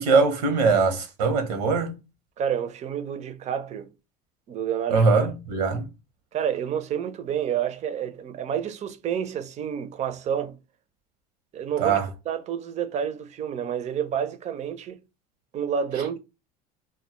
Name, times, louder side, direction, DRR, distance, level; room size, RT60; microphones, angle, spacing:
voice 1, 0.0-2.0 4.9-5.9 11.8-12.1, right 4 dB, 90° right, 0.7 m, -21 dB
voice 2, 2.4-3.9 4.5-5.3 6.3-10.6 11.5-12.0 12.3-15.0 15.5-16.2, right 8 dB, 35° right, 0.4 m, -29 dB
2.1 x 2.0 x 2.8 m
supercardioid pair, 95°, 20 cm